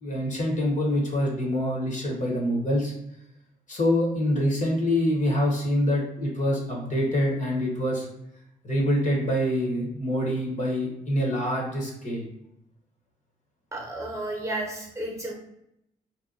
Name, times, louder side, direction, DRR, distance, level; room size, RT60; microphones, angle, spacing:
voice 1, 0.0-2.9 3.7-8.1 8.6-12.3, equal, 45° left, -1 dB, 1.0 m, -25 dB
voice 2, 13.7-15.3, right 1 dB, 15° right, -1 dB, 1.0 m, -32 dB
2.8 x 2.1 x 2.5 m, 0.78 s
hypercardioid pair, 45°, 18 cm